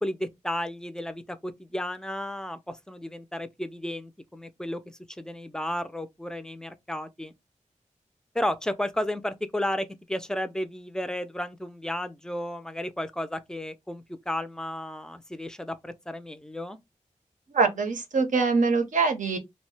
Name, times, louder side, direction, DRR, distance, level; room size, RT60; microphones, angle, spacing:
voice 1, 0.0-7.3 8.3-16.8, left 1 dB, 5° left, 0.4 m, -33 dB
voice 2, 17.5-19.4, right 4 dB, 80° right, 0.6 m, -23 dB
2.6 x 2.1 x 3.2 m
wide cardioid pair, 105°, 13 cm